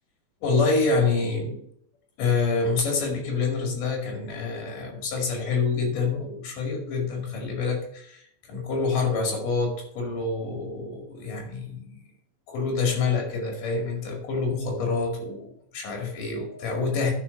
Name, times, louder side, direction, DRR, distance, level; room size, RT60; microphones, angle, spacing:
voice 1, 0.4-1.6 2.2-12.0 12.5-17.1, left 4 dB, 60° left, 2 dB, 3.8 m, -27 dB
11.0 x 5.0 x 5.7 m, 0.68 s
omnidirectional pair, 4.3 m